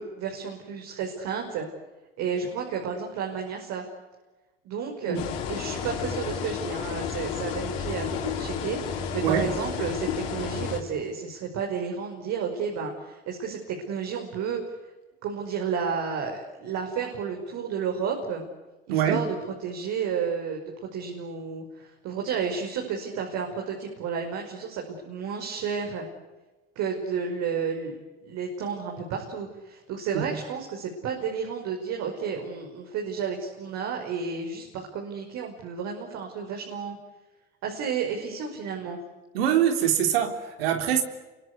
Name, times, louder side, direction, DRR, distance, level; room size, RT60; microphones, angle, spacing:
voice 1, 0.0-1.7 2.2-3.8 4.6-5.2 5.5-14.6 15.2-18.4 18.9-19.4 19.6-26.1 26.8-27.9 28.2-37.0 37.6-39.0, right 6 dB, 65° right, 5.5 m, -32 dB
sound 1, 5.1-10.8, left 7 dB, 80° left, 5.4 m, -31 dB
voice 2, 18.9-19.2 30.1-30.2 39.3-41.0, right 9 dB, 85° right, 3.6 m, -24 dB
28.5 x 24.5 x 8.3 m
hypercardioid pair, 75°, 29 cm